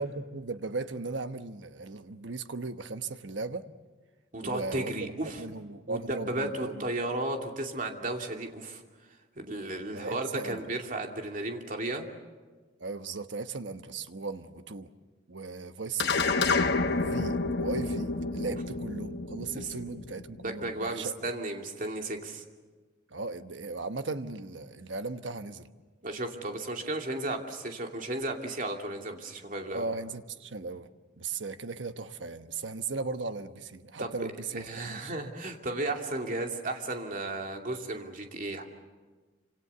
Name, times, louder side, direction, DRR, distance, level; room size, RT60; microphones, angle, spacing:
voice 1, 0.0-3.6 4.4-4.9 5.4-6.9 9.9-10.6 12.8-14.9 15.3-16.2 16.9-21.1 23.1-25.7 29.7-30.9 31.2-35.1, right 3 dB, 80° right, 9 dB, 1.2 m, -37 dB
voice 2, 4.3-5.4 5.9-8.8 9.4-12.1 19.6-19.7 20.4-22.4 26.0-29.9 34.0-38.6, right 2 dB, 45° right, 3 dB, 2.7 m, -34 dB
sound 1, 16.0-20.6, left 3 dB, 60° left, 1.2 m, -29 dB
27.5 x 26.5 x 6.9 m, 1.3 s
head